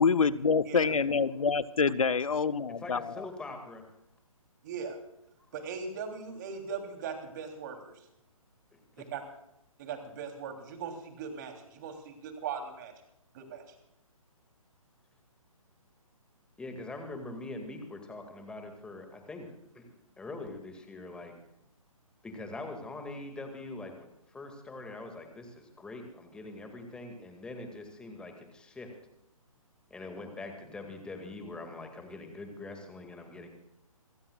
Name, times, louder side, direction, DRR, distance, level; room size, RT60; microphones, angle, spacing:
voice 1, 0.0-3.2, left 5 dB, 70° left, 16 dB, 0.9 m, -26 dB
voice 2, 2.8-3.9 8.7-9.1 16.6-21.3 22.2-28.9 29.9-33.5, left 2 dB, 5° left, 4 dB, 2.1 m, -43 dB
voice 3, 4.6-5.0 5.5-7.8 9.1-9.2 9.8-12.9 13.3-13.6, right 6 dB, 35° right, 4 dB, 3.2 m, -39 dB
28.0 x 15.5 x 2.4 m, 0.82 s
figure-of-eight pair, 135°, 18 cm